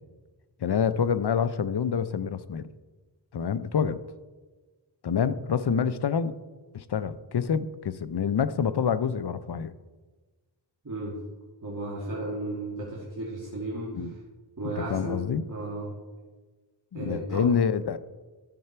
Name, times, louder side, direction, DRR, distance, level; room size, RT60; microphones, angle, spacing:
voice 1, 0.6-2.7 3.3-4.0 5.0-6.3 6.7-9.7 13.9-14.1 14.6-15.4 16.9-18.0, left 7 dB, 60° left, 14 dB, 0.7 m, -27 dB
voice 2, 10.8-11.2 11.6-14.1 14.6-15.2 15.5-16.0 16.9-17.5, right 2 dB, 45° right, -6 dB, 2.4 m, -34 dB
13.0 x 6.8 x 4.4 m, 1.3 s
wide cardioid pair, 50°, 44 cm